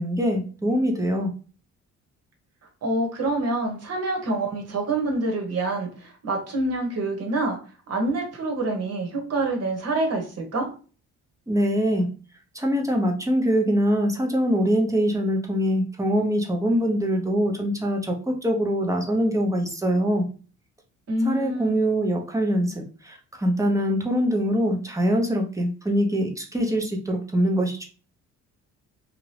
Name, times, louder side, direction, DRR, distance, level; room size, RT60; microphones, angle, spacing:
voice 1, 0.0-1.3 11.5-12.1 12.5-20.2 21.2-27.8, equal, 10° right, 1 dB, 0.8 m, -23 dB
voice 2, 2.8-7.6 7.9-10.7 21.1-21.8, right 2 dB, 55° right, 1 dB, 1.2 m, -26 dB
2.8 x 2.5 x 3.2 m, 0.37 s
cardioid pair, 90°, 30 cm